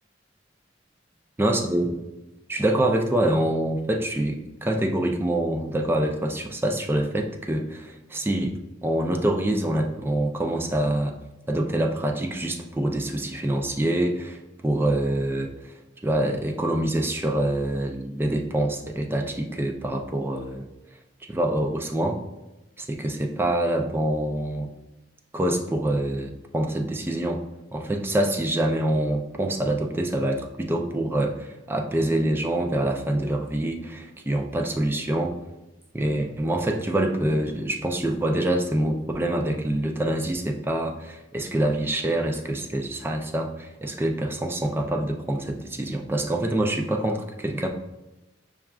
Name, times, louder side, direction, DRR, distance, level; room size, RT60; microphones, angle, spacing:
voice 1, 1.4-2.0 2.5-11.1 11.5-15.8 16.0-20.7 21.3-22.2 22.8-24.7 25.3-27.4 27.7-35.4 35.9-47.7, right 1 dB, 10° right, 3 dB, 0.3 m, -25 dB
6.6 x 2.4 x 2.3 m, 0.99 s
head